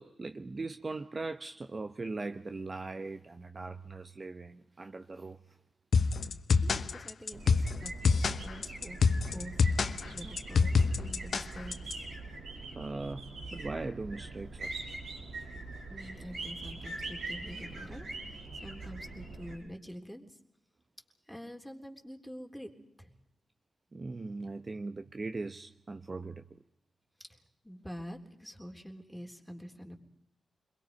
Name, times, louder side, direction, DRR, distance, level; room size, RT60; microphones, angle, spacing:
voice 1, 0.0-5.6 12.8-14.7 23.9-26.6, right 3 dB, 35° right, 1.0 m, -40 dB
sound 1, 5.9-11.9, left 5 dB, 65° left, 1.1 m, -27 dB
voice 2, 6.6-12.0 15.9-20.4 21.3-22.7 23.0-23.1 27.6-30.0, equal, ahead, 3.6 m, -46 dB
sound 2, 7.3-19.6, right 2 dB, 85° right, 6.9 m, -43 dB
29.5 x 22.0 x 5.3 m
cardioid pair, 75°, 0 cm